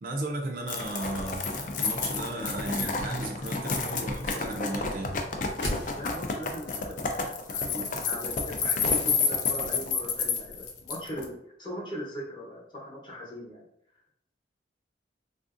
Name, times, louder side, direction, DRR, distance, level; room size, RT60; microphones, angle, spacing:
voice 1, 0.0-5.2, right 1 dB, 50° right, 2 dB, 0.4 m, -35 dB
sound 1, 0.7-11.2, left 4 dB, 45° left, 0.4 m, -30 dB
sound 2, 5.2-6.4 8.8-9.7 10.0-10.1, left 1 dB, 85° left, 0.9 m, -36 dB
voice 2, 5.9-13.6, equal, 25° left, -4 dB, 0.8 m, -40 dB
3.5 x 2.5 x 2.5 m, 0.77 s
head